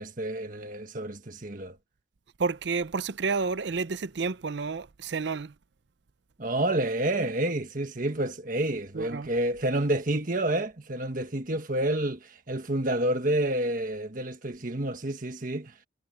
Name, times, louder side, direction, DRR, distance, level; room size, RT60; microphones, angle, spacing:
voice 1, 0.0-1.8 6.4-15.7, right 1 dB, 45° right, 1.5 m, -29 dB
voice 2, 2.4-5.5 8.9-9.3, right 4 dB, 60° right, 0.6 m, -30 dB
head